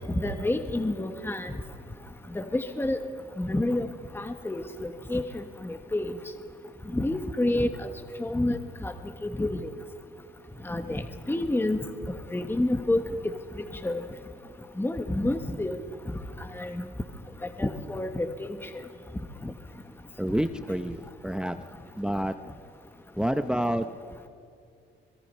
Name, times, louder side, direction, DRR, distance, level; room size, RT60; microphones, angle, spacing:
voice 1, 0.1-1.6 2.3-3.0 3.4-3.9 4.1-6.2 6.9-7.9 8.2-8.9 9.2-9.7 10.6-11.8 12.3-13.4 13.8-14.1 14.8-15.8 16.5-16.9 17.6-18.6 19.4-19.5, left 1 dB, 10° left, 7 dB, 1.3 m, -29 dB
voice 2, 20.2-21.5 22.0-22.3 23.2-23.9, equal, 5° right, 9 dB, 0.8 m, -28 dB
25.0 x 22.0 x 5.6 m, 2.3 s
cardioid pair, 90°, 20 cm